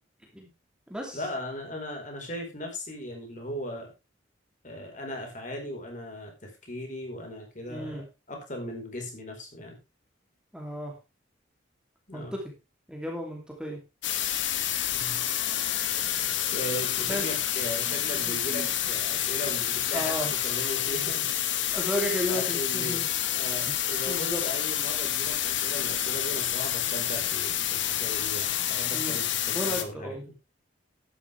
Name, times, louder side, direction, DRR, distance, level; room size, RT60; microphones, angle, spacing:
voice 1, 1.1-3.9 4.6-9.8 12.1-12.3 14.9-15.2 16.5-21.3 22.3-23.0 23.3-30.2, left 1 dB, 40° left, 2 dB, 4.5 m, -38 dB
voice 2, 7.7-8.0 10.5-10.9 12.1-12.4 12.9-13.8 17.1-17.3 17.9-18.0 18.2-18.7 19.9-20.3 21.7-23.1 24.1-24.4 28.9-29.2 29.5-30.2, equal, 5° right, 0 dB, 2.9 m, -33 dB
sound 1, 14.0-29.8, left 11 dB, 70° left, 1.5 m, -28 dB
12.0 x 11.0 x 3.4 m, 0.25 s
head